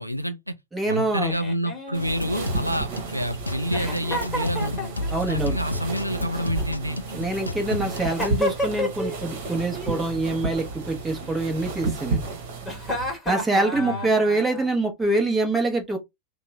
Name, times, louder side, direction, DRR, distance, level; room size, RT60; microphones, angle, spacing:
voice 1, 0.0-0.5 0.8-4.9 5.3-7.0 13.7-14.1, equal, 90° right, 0.3 m, -28 dB
voice 2, 0.7-1.3 5.1-5.6 7.1-12.3 13.2-16.0, right 2 dB, 10° right, 1.1 m, -25 dB
Giggle, 1.2-3.0 3.7-5.3 6.4-7.3 8.0-9.2 9.5-10.0 11.2-12.0 12.6-14.7, left 1 dB, 10° left, 1.5 m, -32 dB
sound 1, 1.9-13.1, right 3 dB, 50° right, 1.2 m, -32 dB
sound 2, 2.0-8.4, left 2 dB, 80° left, 0.3 m, -32 dB
2.9 x 2.3 x 3.1 m
figure-of-eight pair, 90°, 0 cm